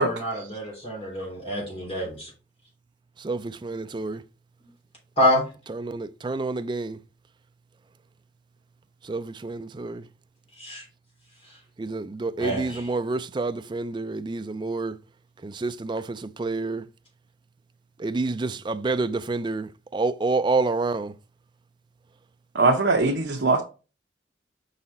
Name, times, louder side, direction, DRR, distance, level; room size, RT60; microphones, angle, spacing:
voice 1, 0.0-2.3 5.2-5.4 10.6-10.8 12.4-12.8, left 1 dB, 30° left, 3.3 m, -26 dB
voice 2, 3.2-4.2 5.7-7.0 9.0-10.0 11.8-15.0 15.4-16.8 18.0-21.1, right 3 dB, 25° right, 0.3 m, -28 dB
voice 3, 22.5-23.6, right 3 dB, 65° right, 0.9 m, -21 dB
5.6 x 4.0 x 4.2 m
head